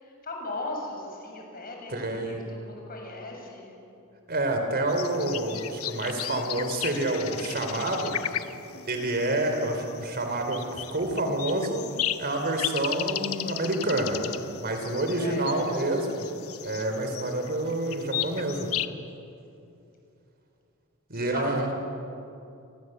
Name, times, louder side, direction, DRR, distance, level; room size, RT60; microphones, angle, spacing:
voice 1, 0.0-3.7 15.2-15.6 21.1-21.7, left 2 dB, 45° left, 1 dB, 6.8 m, -38 dB
voice 2, 1.9-2.4 4.3-8.1 8.9-11.8 12.2-14.2 14.6-16.3 16.6-18.7 21.1-21.7, right 1 dB, 45° right, 4 dB, 4.0 m, -28 dB
sound 1, 4.9-18.9, left 11 dB, 90° left, 1.0 m, -36 dB
29.5 x 24.0 x 8.1 m, 2.7 s
head